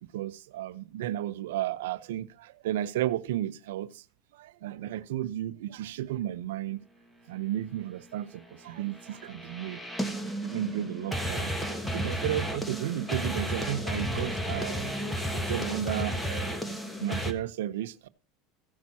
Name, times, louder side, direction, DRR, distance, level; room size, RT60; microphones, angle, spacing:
voice 1, 0.0-4.0 4.3-6.8 7.3-9.8 10.4-11.5 11.8-14.9 15.3-18.1, right 13 dB, 85° right, 0.6 m, -33 dB
sound 1, 8.9-17.3, equal, 5° left, 1.4 m, -33 dB
15.5 x 6.1 x 4.2 m
supercardioid pair, 120°, 0 cm